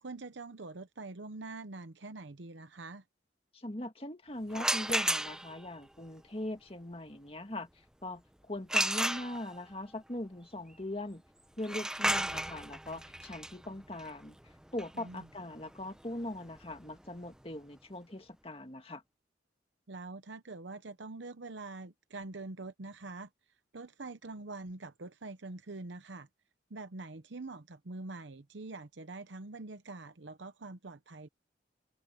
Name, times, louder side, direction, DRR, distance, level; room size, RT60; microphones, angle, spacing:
voice 1, 0.0-3.0 12.0-12.2 15.0-15.3 19.9-23.3 23.7-26.3 26.7-31.3, right 3 dB, 80° right, 0.9 m, -45 dB
voice 2, 3.5-7.7 8.0-11.2 11.6-19.0, left 1 dB, 30° left, 1.9 m, -41 dB
sound 1, 4.5-5.7 8.7-9.7 11.6-17.3, right 1 dB, 5° right, 0.7 m, -34 dB
head